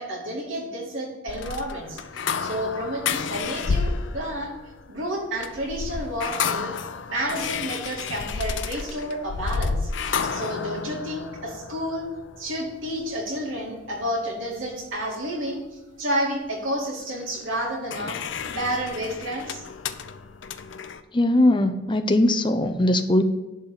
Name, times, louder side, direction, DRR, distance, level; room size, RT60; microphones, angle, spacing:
voice 1, 0.0-4.5 4.9-6.7 7.1-12.1 12.4-15.6 16.0-18.2 18.5-19.6, equal, 80° right, -1 dB, 2.4 m, -30 dB
sound 1, 1.3-13.6 17.3-21.0, left 5 dB, 65° left, 0.5 m, -31 dB
voice 2, 21.1-23.2, left 1 dB, 25° left, 7 dB, 0.6 m, -20 dB
11.0 x 3.9 x 7.2 m, 1.0 s
head